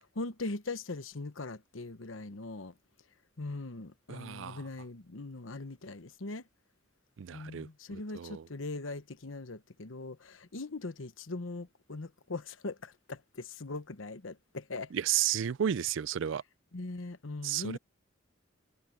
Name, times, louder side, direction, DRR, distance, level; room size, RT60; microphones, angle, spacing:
voice 1, 0.2-2.8 3.4-6.5 7.3-14.9 16.7-17.8, left 2 dB, 80° left, 1.1 m, -40 dB
voice 2, 4.1-4.6 7.2-7.7 8.1-8.5 14.9-16.4 17.4-17.8, right 10 dB, 70° right, 0.4 m, -32 dB
head